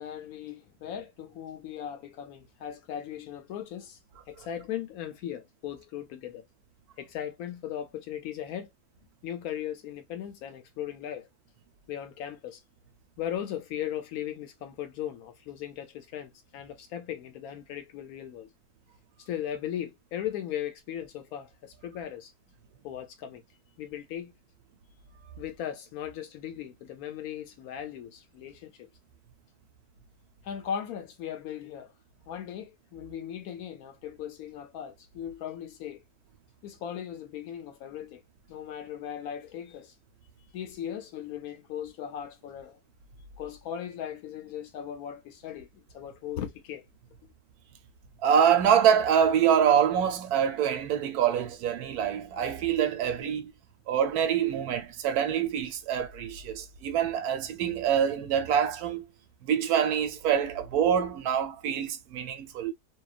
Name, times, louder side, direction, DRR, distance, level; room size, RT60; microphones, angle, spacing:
voice 1, 0.0-4.0 4.3-6.4 7.0-8.7 9.2-11.3 11.9-12.6 13.2-18.5 19.2-22.3 22.8-23.4 23.8-24.3 25.4-28.9 30.4-31.9 32.3-36.0 36.6-38.2 38.5-39.9 40.5-42.8 43.4-46.9, left 10 dB, 75° left, 1.0 m, -38 dB
voice 2, 48.2-53.5 53.9-59.0 59.4-62.7, right 8 dB, 75° right, 1.1 m, -25 dB
2.8 x 2.2 x 2.3 m
omnidirectional pair, 1.7 m